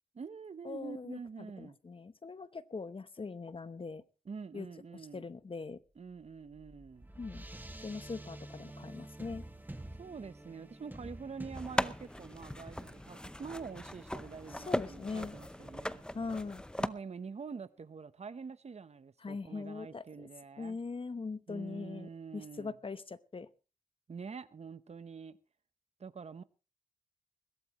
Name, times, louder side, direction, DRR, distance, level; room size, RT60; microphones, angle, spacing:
voice 1, 0.1-1.8 4.3-5.3 6.0-7.1 10.0-16.0 16.8-20.8 21.5-22.7 24.1-25.4 26.0-26.4, right 5 dB, 55° right, 0.9 m, -46 dB
voice 2, 0.6-4.0 4.5-4.7 4.9-5.8 7.2-7.5 7.8-9.4 14.5-15.4 16.1-16.6 19.2-20.3 20.6-23.5, left 4 dB, 45° left, 0.9 m, -41 dB
sound 1, 6.1-16.9, right 1 dB, 15° right, 2.0 m, -50 dB
sound 2, 11.5-16.9, left 1 dB, 5° left, 0.7 m, -38 dB
21.5 x 16.0 x 3.1 m
wide cardioid pair, 95°, 13 cm